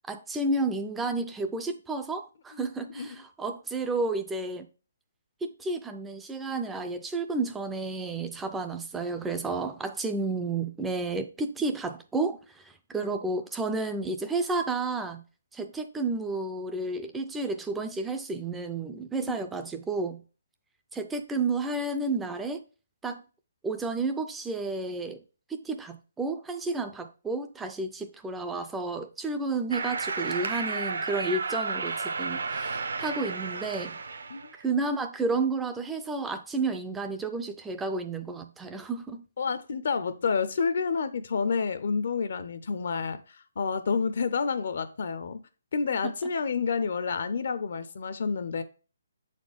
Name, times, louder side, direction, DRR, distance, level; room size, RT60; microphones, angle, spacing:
voice 1, 0.1-4.7 5.4-15.2 15.5-20.2 20.9-22.6 23.0-23.2 23.6-25.2 25.5-34.0 34.6-39.2 46.0-46.1, right 3 dB, 5° right, 0.3 m, -31 dB
sound 1, 29.7-34.6, right 4 dB, 75° right, 0.8 m, -32 dB
voice 2, 39.4-45.4 45.7-48.6, left 5 dB, 55° left, 0.5 m, -29 dB
7.0 x 4.1 x 3.4 m
hypercardioid pair, 170°, 0 cm